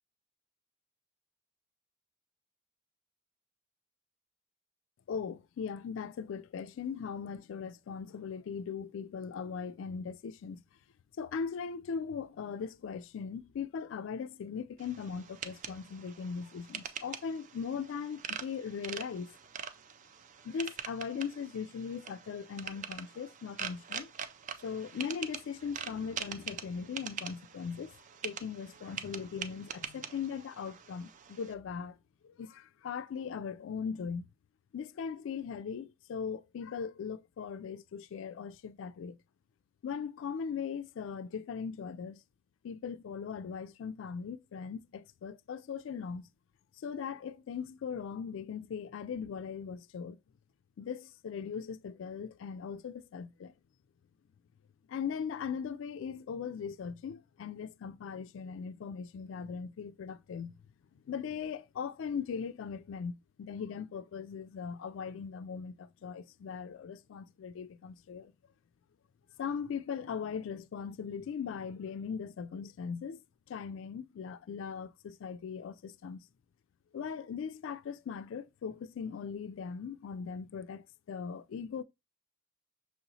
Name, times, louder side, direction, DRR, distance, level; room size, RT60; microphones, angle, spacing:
voice 1, 5.1-10.6 11.2-19.3 20.4-24.1 24.6-27.9 28.2-32.0 32.2-34.3 34.7-39.2 39.8-42.2 42.6-46.3 46.8-50.2 50.8-53.5 54.9-60.5 60.9-63.1 63.4-68.3 69.4-73.2 73.5-76.2 76.9-81.8, left 6 dB, 65° left, 0.3 m, -39 dB
sound 1, 14.8-31.5, right 7 dB, 35° right, 0.3 m, -44 dB
6.1 x 2.9 x 2.7 m
head